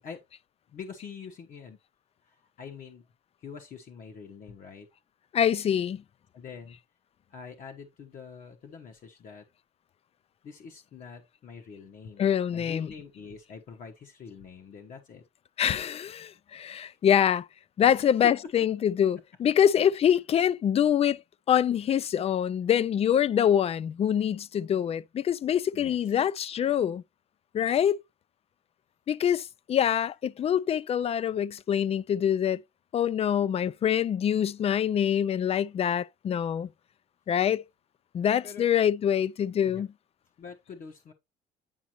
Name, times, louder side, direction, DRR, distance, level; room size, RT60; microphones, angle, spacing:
voice 1, 0.7-1.8 2.2-3.0 3.4-4.9 6.3-6.8 7.3-9.4 10.4-12.3 12.5-15.2 17.9-18.5 25.7-26.0 38.4-38.7 39.7-39.8 40.4-41.1, left 6 dB, 55° left, 1.2 m, -45 dB
voice 2, 5.3-6.0 12.2-12.9 15.6-17.5 17.8-21.2 21.5-27.0 27.5-28.0 29.1-32.6 32.9-36.7 37.3-37.6 38.1-39.9, left 9 dB, 35° left, 0.4 m, -25 dB
9.5 x 5.0 x 3.0 m
cardioid pair, 110°, 17 cm